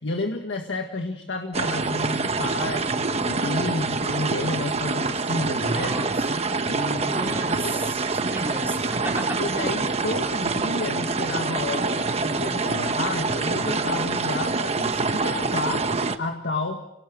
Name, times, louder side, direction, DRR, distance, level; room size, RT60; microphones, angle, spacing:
voice 1, 0.0-6.1 6.6-7.7 9.4-15.9 16.2-16.8, left 2 dB, 80° left, 4 dB, 1.7 m, -31 dB
sound 1, 1.5-16.2, right 3 dB, 35° right, 1.1 m, -26 dB
voice 2, 5.6-6.1 7.1-9.7, right 1 dB, 15° right, -1 dB, 4.3 m, -33 dB
27.0 x 18.5 x 6.6 m, 0.85 s
head